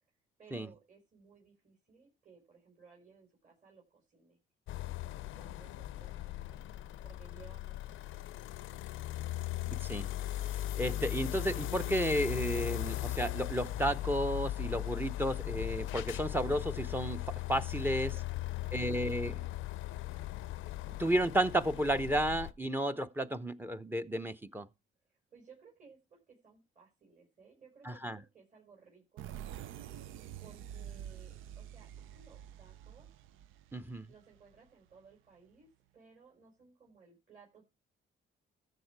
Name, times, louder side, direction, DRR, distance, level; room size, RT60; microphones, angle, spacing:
voice 1, 0.4-4.4 4.7-6.6 7.0-8.9 9.4-9.6 18.5-18.9 19.3-19.5 20.1-20.5 25.0-29.9 30.4-33.1 34.1-35.7 35.9-37.7, right 5 dB, 40° right, 4.9 m, -60 dB
sound 1, 4.7-22.5, left 14 dB, 85° left, 0.6 m, -38 dB
voice 2, 9.7-10.1 10.8-18.1 18.7-19.4 20.9-24.7 27.9-28.2 33.7-34.1, right 1 dB, 10° right, 0.7 m, -32 dB
sound 2, 29.2-34.7, right 10 dB, 85° right, 0.5 m, -47 dB
14.0 x 7.2 x 4.6 m
cardioid pair, 90°, 20 cm